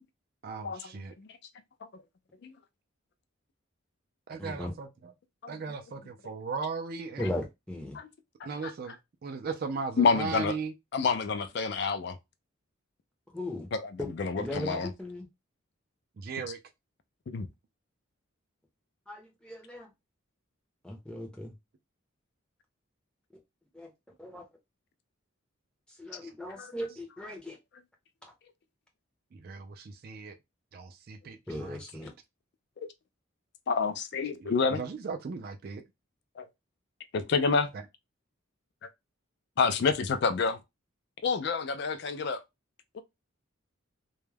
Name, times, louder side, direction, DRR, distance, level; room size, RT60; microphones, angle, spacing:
voice 1, 0.4-1.1 4.3-5.1 5.5-7.2 8.4-10.7 16.2-16.6 26.2-26.3 29.3-30.4 30.7-32.0 34.4-35.8 37.7-37.8, right 5 dB, 45° right, 0.3 m, -37 dB
voice 2, 4.4-4.7 7.2-8.0 13.3-13.7 14.0-14.1 14.4-15.3 19.1-19.9 20.8-21.5 23.7-23.9 24.2-24.4 26.0-27.6 31.5-32.1, left 1 dB, 5° left, 0.6 m, -37 dB
voice 3, 10.0-10.5 10.9-12.2 13.7-14.9 17.3-17.5 26.5-26.7 33.7-34.8 36.4-36.5 37.1-37.7 39.6-40.6 41.2-42.4 42.9-43.0, left 5 dB, 50° left, 0.3 m, -28 dB
2.3 x 2.1 x 3.2 m
head